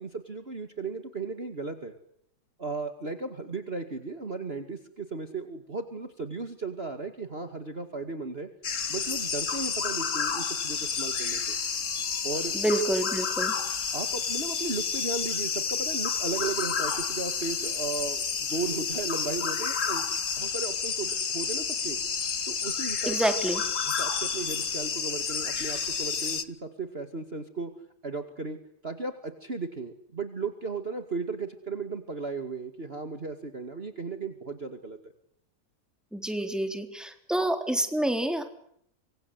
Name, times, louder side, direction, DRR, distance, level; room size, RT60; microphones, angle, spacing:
voice 1, 0.0-2.0 2.6-8.5 8.9-11.6 12.2-12.6 13.9-20.1 20.4-22.0 22.5-23.2 23.8-27.7 28.0-35.0, right 3 dB, 35° right, 7 dB, 2.5 m, -35 dB
sound 1, 8.6-26.4, left 6 dB, 45° left, 1.7 m, -30 dB
voice 2, 12.5-13.5 23.1-23.6 36.1-38.5, right 1 dB, ahead, 6 dB, 3.7 m, -28 dB
26.0 x 25.5 x 8.2 m, 0.71 s
omnidirectional pair, 2.0 m